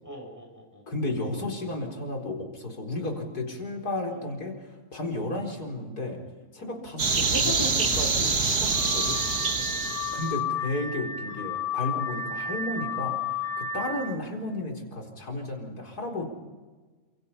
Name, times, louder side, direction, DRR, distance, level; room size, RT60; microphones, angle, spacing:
voice 1, 0.0-0.8 4.3-4.4 9.4-10.2, equal, 10° right, 1 dB, 7.1 m, -46 dB
voice 2, 0.9-6.2 6.5-9.2 10.1-13.2 13.6-16.3, left 2 dB, 80° left, 2 dB, 4.9 m, -33 dB
sound 1, 7.0-10.3, right 4 dB, 75° right, 2.5 m, -25 dB
Car / Alarm, 8.7-14.2, left 6 dB, 50° left, 2.4 m, -32 dB
29.5 x 27.0 x 5.7 m, 1.3 s
omnidirectional pair, 1.6 m